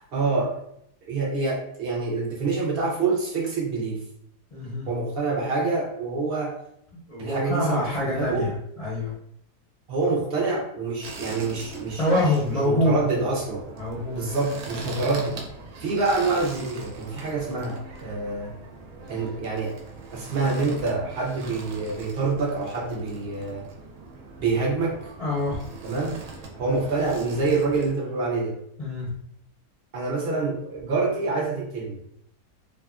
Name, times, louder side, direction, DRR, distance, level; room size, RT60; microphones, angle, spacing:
voice 1, 0.1-0.6 1.1-4.0 4.9-6.5 7.2-8.5 9.9-12.2 12.6-13.6 14.1-15.4 15.8-18.5 19.1-19.7 20.1-23.6 24.4-25.0 25.8-26.1 26.6-28.5 29.9-32.0, right 3 dB, 55° right, -4 dB, 0.6 m, -26 dB
voice 2, 4.5-4.9 6.9-9.1 12.0-13.0 13.7-14.3 14.8-15.0 25.2-25.6 28.8-29.1, left 1 dB, 45° left, -7 dB, 0.5 m, -25 dB
sound 1, 11.0-27.9, right 3 dB, 70° right, 1.0 m, -41 dB
2.6 x 2.4 x 2.4 m, 0.71 s
omnidirectional pair, 1.8 m